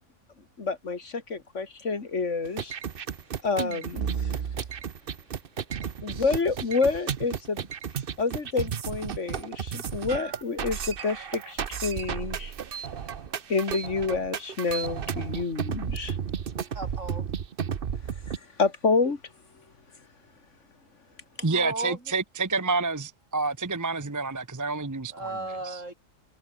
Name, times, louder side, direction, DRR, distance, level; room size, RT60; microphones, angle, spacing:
voice 1, 0.6-2.8 3.4-4.3 6.0-7.7 8.2-12.5 13.5-16.2 18.3-19.2, left 4 dB, 65° left, 2.5 m, -28 dB
sound 1, 2.4-18.4, right 7 dB, 50° right, 1.0 m, -33 dB
voice 2, 16.7-17.3 21.4-22.0 25.1-25.9, right 2 dB, 70° right, 6.1 m, -35 dB
voice 3, 21.4-25.4 25.6-25.8, right 3 dB, 15° right, 0.9 m, -29 dB
omnidirectional pair, 1.3 m